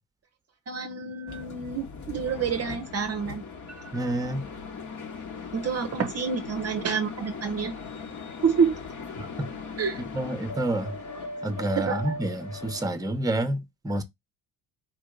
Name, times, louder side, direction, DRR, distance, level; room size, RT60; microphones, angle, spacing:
voice 1, 0.7-3.4 3.8-4.0 5.5-7.7 8.4-8.8 9.8-10.0 11.8-12.2, right 6 dB, 35° right, 0.8 m, -28 dB
sound 1, 1.3-12.9, left 4 dB, 45° left, 1.4 m, -39 dB
voice 2, 3.9-4.5 9.2-9.5 10.1-10.9 11.4-14.0, right 1 dB, 10° right, 1.0 m, -29 dB
4.7 x 2.8 x 3.7 m
hypercardioid pair, 60°, 42 cm